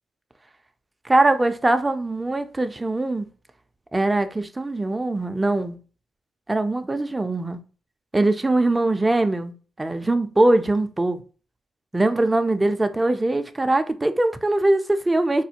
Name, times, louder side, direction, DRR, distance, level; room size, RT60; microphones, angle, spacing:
voice 1, 1.0-3.3 3.9-5.8 6.5-7.6 8.1-11.2 11.9-15.4, right 2 dB, 20° right, 0.4 m, -22 dB
4.1 x 2.2 x 2.8 m
cardioid pair, 75°, 0 cm